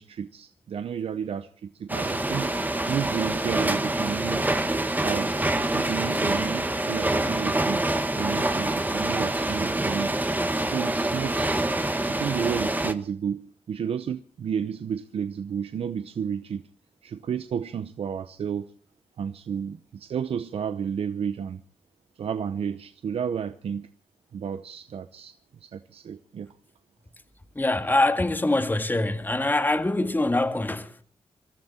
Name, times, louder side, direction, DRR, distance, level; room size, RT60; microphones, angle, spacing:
voice 1, 0.0-2.5 2.9-4.5 5.0-7.8 8.1-10.2 10.6-11.7 12.1-16.7 17.0-18.7 19.2-21.6 22.2-23.9 24.3-25.3 25.6-26.5, right 7 dB, 75° right, 0.8 m, -32 dB
sound 1, 1.9-12.9, right 1 dB, 15° right, 1.6 m, -26 dB
voice 2, 27.6-31.0, left 2 dB, 20° left, 1.8 m, -24 dB
24.5 x 13.5 x 4.3 m
cardioid pair, 65°, 10 cm